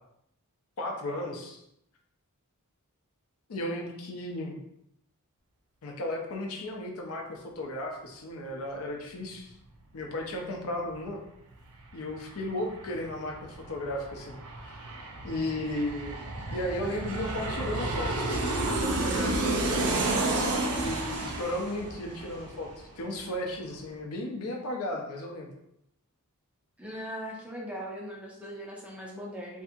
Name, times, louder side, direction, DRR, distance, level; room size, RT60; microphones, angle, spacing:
voice 1, 0.8-1.6 3.5-4.6 5.8-9.5 9.9-11.2 11.9-13.4 13.7-14.4 14.6-14.8 15.2-16.2 16.5-18.1 18.4-20.2 20.7-25.5, left 1 dB, 65° left, 1 dB, 0.5 m, -35 dB
Aircraft, 11.5-11.6 11.9-23.2 23.5-23.6, right 2 dB, 75° right, 0.4 m, -31 dB
voice 2, 26.8-29.6, equal, 5° right, -3 dB, 0.5 m, -39 dB
2.6 x 2.4 x 2.6 m, 0.79 s
head